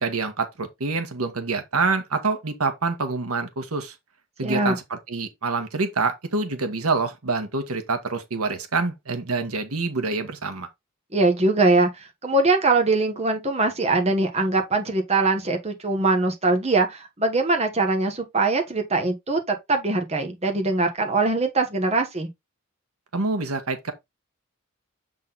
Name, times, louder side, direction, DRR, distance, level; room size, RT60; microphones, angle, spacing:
voice 1, 0.0-3.9 4.4-10.7 23.1-23.9, right 3 dB, 90° right, 1.3 m, -26 dB
voice 2, 4.4-4.8 11.1-22.3, right 3 dB, 30° right, 1.2 m, -22 dB
7.4 x 3.9 x 3.9 m
head